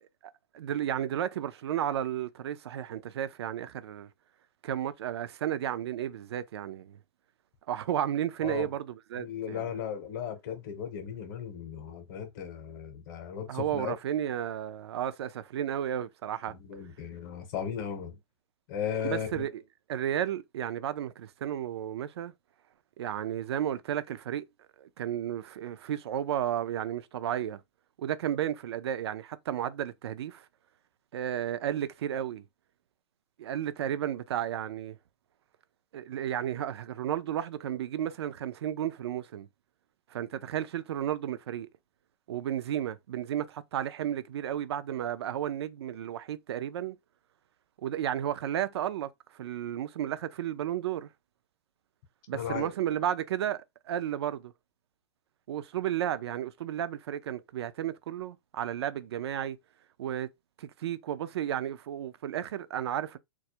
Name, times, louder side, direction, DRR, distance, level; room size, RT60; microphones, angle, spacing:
voice 1, 0.5-4.1 4.6-7.0 7.7-9.7 13.5-16.6 19.0-19.6 19.9-22.3 23.0-24.5 24.8-27.6 28.0-30.5 31.1-32.4 33.4-35.0 35.9-39.5 40.1-41.7 42.3-47.0 47.8-51.1 52.3-54.5 55.5-59.6 60.0-60.3 60.6-63.2, right 10 dB, 70° right, 0.4 m, -33 dB
voice 2, 9.2-13.9 16.5-18.2 18.7-19.5 52.3-52.7, left 8 dB, 45° left, 0.7 m, -36 dB
2.2 x 2.0 x 2.7 m
hypercardioid pair, 145°, 14 cm